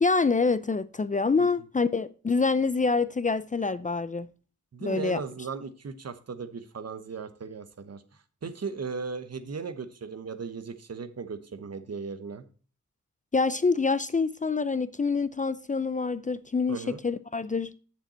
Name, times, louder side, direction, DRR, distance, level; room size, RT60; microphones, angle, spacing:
voice 1, 0.0-4.3 4.8-5.2 13.3-17.7, left 4 dB, 25° left, 0.4 m, -26 dB
voice 2, 4.7-8.0 8.4-12.5 16.7-17.0, right 5 dB, 55° right, 1.0 m, -37 dB
7.6 x 6.9 x 4.2 m
cardioid pair, 55°, 30 cm